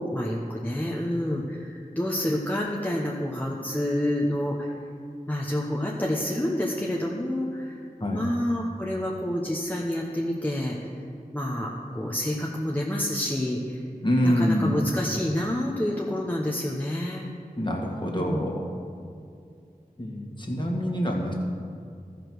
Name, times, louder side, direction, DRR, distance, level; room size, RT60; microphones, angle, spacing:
voice 1, 0.0-4.7 5.3-7.8 8.1-10.8 11.3-13.8 14.2-17.2 18.0-18.5 20.0-20.7, left 1 dB, 10° left, -3 dB, 1.0 m, -28 dB
voice 2, 14.0-14.8 17.6-18.6 20.0-21.3, equal, 30° left, -1 dB, 1.8 m, -26 dB
13.5 x 5.2 x 6.2 m, 2.3 s
wide cardioid pair, 45°, 15 cm